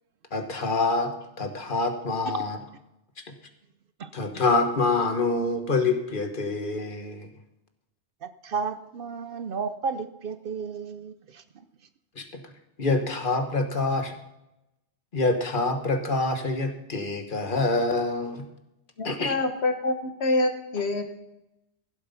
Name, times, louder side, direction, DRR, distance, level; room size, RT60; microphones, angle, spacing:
voice 1, 0.3-1.1 1.4-2.6 4.1-7.3 12.1-12.4 12.8-14.1 15.1-18.4 19.0-19.3, left 3 dB, 50° left, 1.5 m, -26 dB
voice 2, 8.2-11.7, right 5 dB, 60° right, 0.8 m, -33 dB
voice 3, 19.0-21.0, left 2 dB, 70° left, 1.5 m, -26 dB
15.5 x 7.8 x 5.6 m
omnidirectional pair, 1.1 m